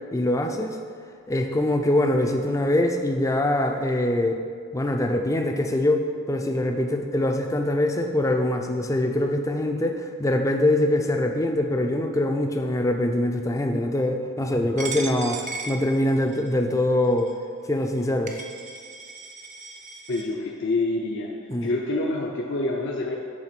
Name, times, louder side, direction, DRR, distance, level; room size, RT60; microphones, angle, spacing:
voice 1, 0.1-0.8 1.3-4.4 4.7-15.4 15.7-17.3 17.7-18.3 21.5-21.7, left 1 dB, 15° left, 4 dB, 0.4 m, -23 dB
Coin (dropping), 14.8-16.5 17.2-17.3 18.0-18.1 18.3-20.2, right 4 dB, 35° right, 0.6 m, -36 dB
voice 2, 20.1-21.3 21.6-23.1, left 2 dB, 55° left, -2 dB, 0.6 m, -26 dB
9.0 x 3.5 x 5.9 m, 2.1 s
head